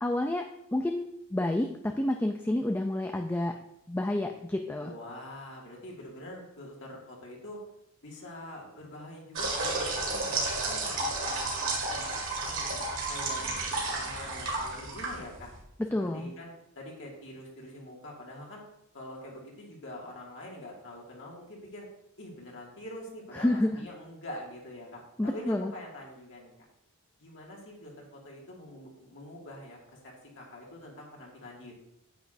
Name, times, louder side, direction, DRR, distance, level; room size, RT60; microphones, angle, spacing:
voice 1, 0.0-1.0 1.3-3.6 3.9-4.9 15.9-16.3 23.3-23.7 25.2-25.7, left 1 dB, 10° left, 4 dB, 0.3 m, -29 dB
voice 2, 4.8-7.6 8.0-12.1 12.4-15.5 16.0-18.6 18.9-21.9 22.2-26.5 27.2-31.8, left 1 dB, 60° left, -2 dB, 2.0 m, -45 dB
sound 1, 9.3-15.6, right 2 dB, 60° right, 2.0 m, -32 dB
9.2 x 8.2 x 2.6 m, 0.78 s
head